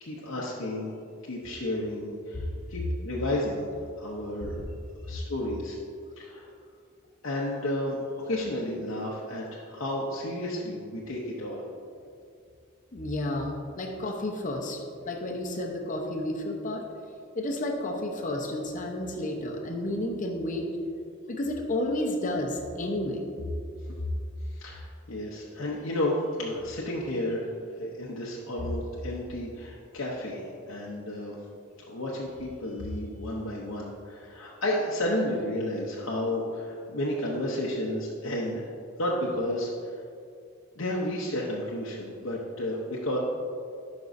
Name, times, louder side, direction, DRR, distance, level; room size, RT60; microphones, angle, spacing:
voice 1, 0.0-0.9 1.2-3.7 4.0-4.6 5.0-5.8 6.2-6.5 7.2-11.6 24.6-27.5 27.8-31.4 31.9-38.6 39.0-39.9 40.8-43.2, left 1 dB, 75° left, -5 dB, 0.8 m, -32 dB
voice 2, 12.9-13.5 13.8-16.8 17.3-20.7 21.3-23.2, left 1 dB, 40° left, 1 dB, 0.8 m, -31 dB
11.0 x 5.2 x 2.6 m, 2.4 s
head